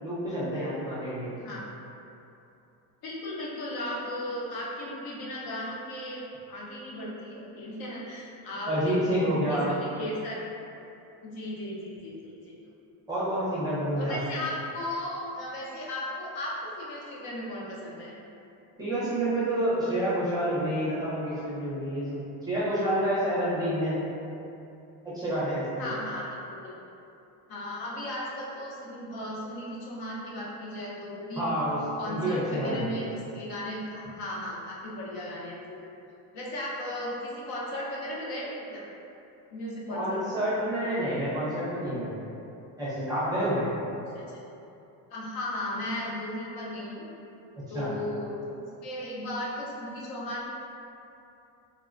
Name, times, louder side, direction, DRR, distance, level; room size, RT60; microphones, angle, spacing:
voice 1, 0.0-1.4 8.7-9.7 13.1-14.2 18.8-22.2 22.5-24.0 25.1-25.9 31.4-31.8 32.0-32.8 39.9-42.1 42.8-43.7 47.6-47.9, right 1 dB, 10° right, -10 dB, 0.6 m, -28 dB
voice 2, 3.0-6.2 6.5-10.4 11.2-12.6 13.9-18.2 25.8-26.4 26.6-26.7 27.5-31.5 32.0-35.8 36.3-38.8 39.5-40.4 44.1-44.2 45.1-47.1 47.7-50.5, left 1 dB, 60° left, -5 dB, 0.7 m, -36 dB
3.2 x 2.1 x 2.5 m, 2.8 s
cardioid pair, 155°, 42 cm